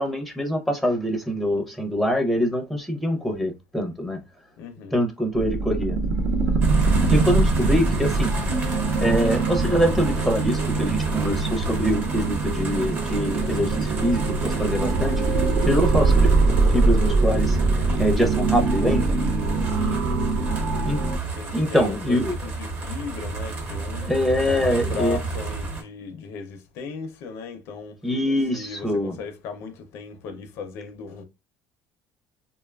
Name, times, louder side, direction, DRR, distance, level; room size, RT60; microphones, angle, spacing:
voice 1, 0.0-4.2 4.9-6.0 7.1-8.3 9.0-15.2 15.6-16.3 16.7-19.1 20.8-21.0 21.5-22.3 24.0-25.2 28.0-29.1, equal, ahead, 0.5 m, -24 dB
voice 2, 4.6-5.0 19.4-20.6 21.3-28.2 28.5-31.2, left 5 dB, 65° left, 0.5 m, -37 dB
sound 1, 5.3-21.2, right 3 dB, 80° right, 0.5 m, -22 dB
sound 2, 6.6-25.8, right 3 dB, 35° right, 0.8 m, -32 dB
2.7 x 2.3 x 2.2 m
cardioid pair, 140°, 5 cm